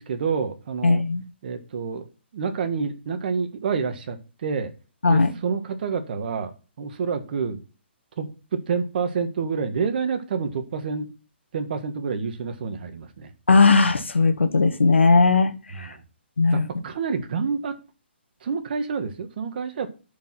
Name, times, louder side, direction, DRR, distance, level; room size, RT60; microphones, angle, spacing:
voice 1, 0.0-1.0 1.4-4.7 5.1-6.5 6.8-7.6 8.2-11.1 11.5-13.3 15.7-16.0 16.5-17.8 18.4-19.9, right 5 dB, 55° right, 8 dB, 1.7 m, -28 dB
voice 2, 0.8-1.2 5.0-5.3 13.5-15.9 16.4-16.7, left 4 dB, 90° left, 8 dB, 1.4 m, -18 dB
10.5 x 5.0 x 5.9 m, 0.34 s
hypercardioid pair, 145°, 6 cm